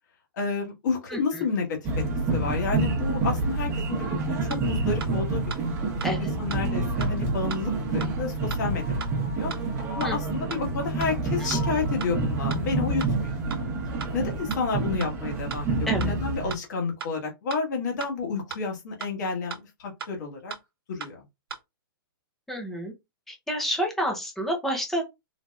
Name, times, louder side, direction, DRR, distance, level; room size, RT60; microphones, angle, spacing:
voice 1, 0.4-2.0 2.3-8.8 9.3-9.5 9.9-13.6 14.1-20.5 20.9-21.2, left 4 dB, 50° left, 1.5 m, -30 dB
voice 2, 1.1-1.4 6.0-6.3 10.0-10.2 11.3-11.5 15.9-16.1 22.5-22.9 23.3-25.0, equal, ahead, 0.7 m, -29 dB
sound 1, 1.8-16.5, right 3 dB, 20° right, 1.0 m, -28 dB
sound 2, 4.5-4.6 5.0-5.1 5.5-5.6 6.0-6.1 6.5-6.6 7.0-7.1 7.5-7.6 8.0-8.1 8.5-8.6 9.0-9.1 9.5-9.6 10.0-10.1 10.5-10.6 11.0-11.1 11.5-11.6 12.0-12.1 12.5-12.6 13.0-13.1 13.5-13.6 14.0-14.1 14.5-14.6 15.0-15.1 15.5-15.6 16.0-16.1 16.5-16.6 17.0-17.1 17.5-17.6 18.0-18.1 18.5-18.6 19.0-19.1 19.5-19.6 20.0-20.1 20.5-20.6 21.0-21.1 21.5-21.6, right 6 dB, 80° right, 0.9 m, -36 dB
4.0 x 2.9 x 2.3 m
hypercardioid pair, 165°, 12 cm